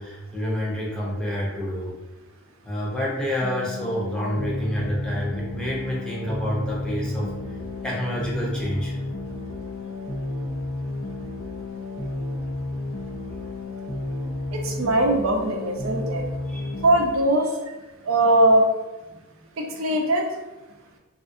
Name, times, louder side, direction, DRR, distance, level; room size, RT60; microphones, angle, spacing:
voice 1, 0.0-2.0 2.6-7.3 7.8-8.9 16.5-16.8 19.1-19.2, equal, 5° left, -6 dB, 0.7 m, -28 dB
sound 1, 3.4-17.0, left 2 dB, 60° left, 0.5 m, -32 dB
voice 2, 14.5-16.2 16.8-17.5 18.0-18.6 19.6-20.2, right 1 dB, 85° right, 1 dB, 0.5 m, -20 dB
3.4 x 2.5 x 2.5 m, 1.1 s
head